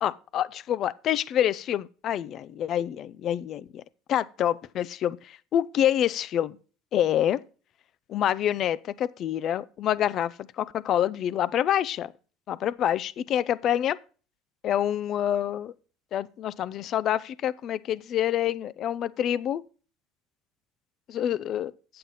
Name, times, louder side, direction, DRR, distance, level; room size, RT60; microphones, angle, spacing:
voice 1, 0.0-3.8 4.1-6.6 6.9-7.4 8.1-12.1 12.5-14.0 14.6-15.7 16.1-19.6 21.1-21.7, left 10 dB, 45° left, 0.4 m, -27 dB
8.7 x 7.6 x 4.1 m
cardioid pair, 125°, 0 cm